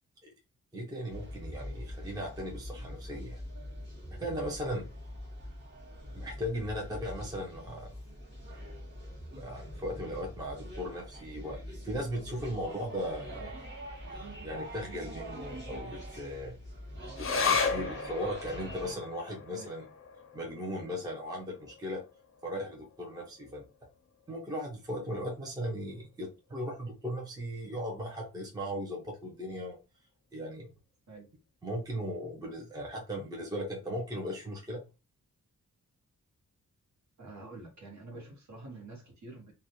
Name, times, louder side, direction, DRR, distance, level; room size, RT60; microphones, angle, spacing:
voice 1, 0.7-3.4 4.1-4.9 6.1-7.9 9.3-13.5 14.4-16.6 17.2-19.9 20.3-22.0 22.4-23.6 24.3-29.8 30.3-30.7 31.6-34.8, equal, 10° right, 0.5 m, -37 dB
sound 1, 1.1-18.9, equal, 35° right, 1.1 m, -44 dB
sound 2, 17.2-23.9 24.3-24.4 24.7-25.3 25.9-26.0, left 5 dB, 40° left, 0.5 m, -36 dB
voice 2, 37.2-39.5, right 2 dB, 55° right, 1.1 m, -47 dB
2.4 x 2.1 x 2.8 m
wide cardioid pair, 160°, 33 cm